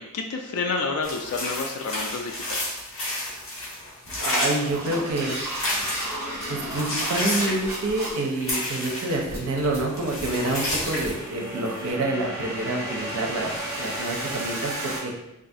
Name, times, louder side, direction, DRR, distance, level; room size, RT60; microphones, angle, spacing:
voice 1, 0.0-2.8, left 4 dB, 85° left, 2 dB, 0.4 m, -30 dB
sound 1, 1.0-6.3 6.6-9.6 9.9-11.9, left 1 dB, 65° left, 1.3 m, -30 dB
sound 2, 1.2-1.4 1.8-2.0 2.5-2.9 3.4-3.6 4.3-15.0, right 1 dB, 10° right, 0.7 m, -34 dB
voice 2, 4.2-5.4 6.5-15.1, right 2 dB, 80° right, 1 dB, 0.5 m, -27 dB
3.7 x 2.3 x 2.6 m, 0.93 s
head